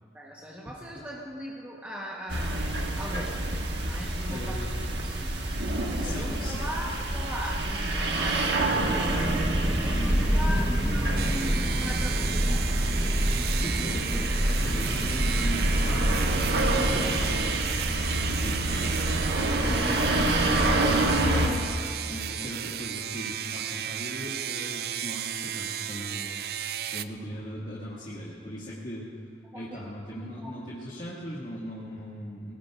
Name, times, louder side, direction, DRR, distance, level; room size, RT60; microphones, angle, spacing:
voice 1, 0.0-2.6 3.0-3.4 3.8-4.5 5.1-5.5 5.9-9.4 9.8-12.6 29.5-30.5, equal, 10° right, -4 dB, 1.1 m, -39 dB
sound 1, 2.3-21.5, right 2 dB, 70° right, 1.5 m, -28 dB
voice 2, 4.3-4.7 6.0-6.6 9.9-10.2 13.6-17.6 17.9-21.6 22.1-29.1 29.5-32.5, equal, 45° left, -8 dB, 2.0 m, -39 dB
sound 2, 8.3-17.5, equal, 30° right, 4.5 m, -27 dB
sound 3, 11.2-27.0, right 9 dB, 55° right, 0.4 m, -34 dB
22.5 x 18.5 x 2.5 m, 2.4 s
head